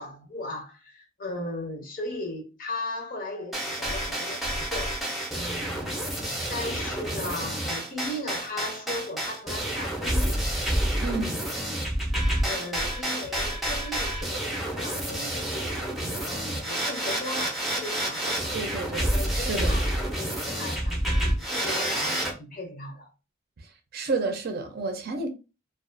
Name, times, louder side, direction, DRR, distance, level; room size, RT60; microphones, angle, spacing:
voice 1, 0.0-5.0 5.3-6.0 6.5-10.4 12.1-18.6 19.1-23.1, left 2 dB, 45° left, 0.6 m, -37 dB
sound 1, 3.5-22.3, right 1 dB, ahead, 0.6 m, -29 dB
voice 2, 11.0-11.4 18.5-19.8 23.6-25.3, right 3 dB, 50° right, 0.5 m, -31 dB
2.4 x 2.3 x 2.5 m
head